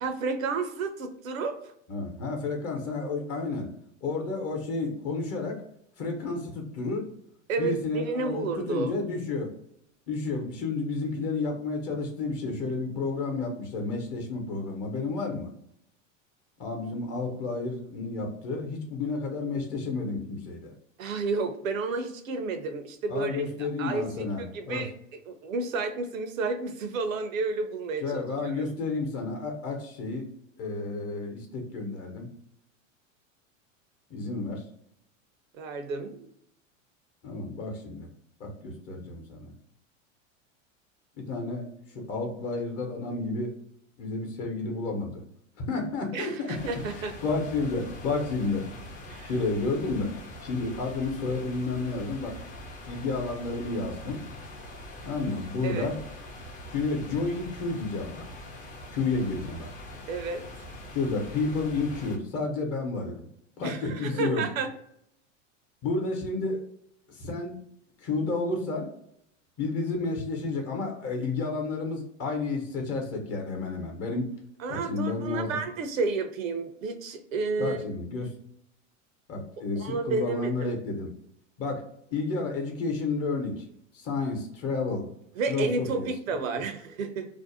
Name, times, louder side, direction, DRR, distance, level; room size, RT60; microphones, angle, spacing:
voice 1, 0.0-1.7 7.5-8.9 21.0-24.1 24.4-24.9 25.3-28.7 35.5-36.3 46.1-47.1 49.1-49.3 55.6-55.9 60.1-60.4 63.6-64.7 74.6-77.8 79.8-80.7 85.3-87.3, right 4 dB, 90° right, 7 dB, 0.6 m, -31 dB
voice 2, 1.9-3.7 4.0-5.6 6.0-7.1 7.6-9.5 10.1-15.5 16.6-20.7 23.1-24.9 28.0-30.3 30.6-32.3 34.1-34.6 37.2-38.1 38.4-39.5 41.2-41.7 41.9-43.6 44.0-45.2 45.6-48.7 49.2-50.1 50.4-52.4 52.9-54.2 55.0-56.0 56.7-58.2 58.9-59.7 60.9-63.3 63.6-64.4 65.8-66.6 67.1-67.6 68.0-68.9 69.6-74.3 74.7-75.6 77.6-78.3 79.3-81.1 81.6-81.8 82.1-83.7 83.9-85.1 85.5-86.1, left 3 dB, 40° left, 2 dB, 0.8 m, -31 dB
sound 1, 46.5-62.2, left 1 dB, 20° left, 0.4 m, -43 dB
2.5 x 2.0 x 2.6 m, 0.72 s
hypercardioid pair, 100°, 39 cm